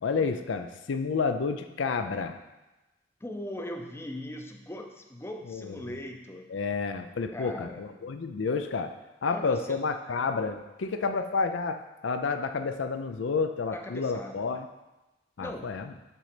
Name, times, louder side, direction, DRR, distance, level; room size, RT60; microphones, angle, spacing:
voice 1, 0.0-2.4 5.5-5.8 6.5-8.9 9.2-14.7 15.4-15.8, left 4 dB, 85° left, 8 dB, 0.5 m, -30 dB
voice 2, 3.2-6.5 7.3-8.1 9.3-9.8 13.7-14.4 15.4-15.8, left 1 dB, 15° left, 3 dB, 0.5 m, -40 dB
7.5 x 4.0 x 4.9 m, 1.0 s
head